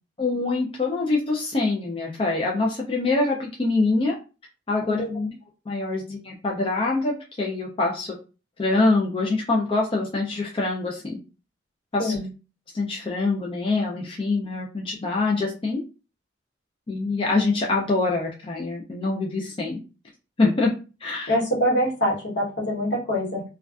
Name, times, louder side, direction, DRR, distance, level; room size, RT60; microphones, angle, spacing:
voice 1, 0.2-4.2 4.7-5.1 5.7-8.1 8.6-11.2 11.9-12.2 12.7-15.8 16.9-19.8 20.4-20.7 21.0-21.3, left 3 dB, 30° left, -1 dB, 0.4 m, -24 dB
voice 2, 4.8-5.3 12.0-12.3 21.3-23.4, equal, 70° left, -3 dB, 1.0 m, -25 dB
2.4 x 2.2 x 2.3 m, 0.32 s
head